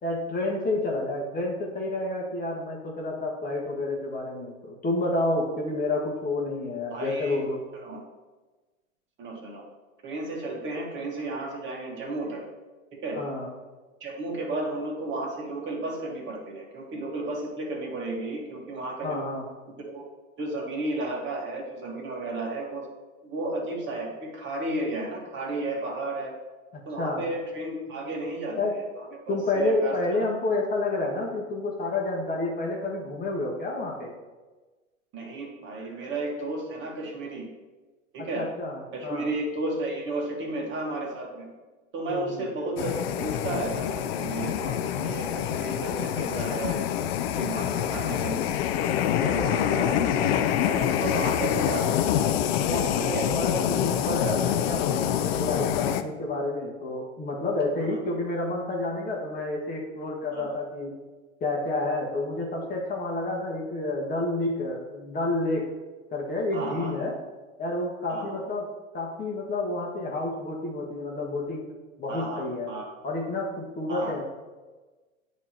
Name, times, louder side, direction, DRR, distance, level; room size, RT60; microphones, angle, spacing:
voice 1, 0.0-7.6 13.1-13.5 19.0-19.4 26.7-27.2 28.6-28.7 29.3-34.1 38.2-39.3 42.1-42.4 47.6-48.1 49.6-49.9 52.6-61.0 61.4-65.7 66.1-67.1 67.6-68.7 68.9-71.7 72.0-72.7 73.0-74.2, left 2 dB, 20° left, -2 dB, 1.1 m, -29 dB
voice 2, 6.9-7.4 7.8-8.0 9.2-9.6 10.0-12.4 13.0-13.2 14.0-19.2 19.8-20.1 20.4-22.9 23.2-26.3 26.8-28.8 29.2-30.0 35.1-37.4 38.1-38.4 38.9-41.5 41.9-46.8 47.4-48.9 49.2-51.9 53.1-53.3 57.8-58.0 60.3-60.5 66.5-66.9 68.1-68.4 72.1-72.8 73.9-74.1, right 2 dB, 30° right, -1 dB, 1.6 m, -33 dB
sound 1, 42.8-56.0, left 10 dB, 50° left, 0.5 m, -26 dB
8.8 x 3.1 x 4.3 m, 1.2 s
hypercardioid pair, 105°, 39 cm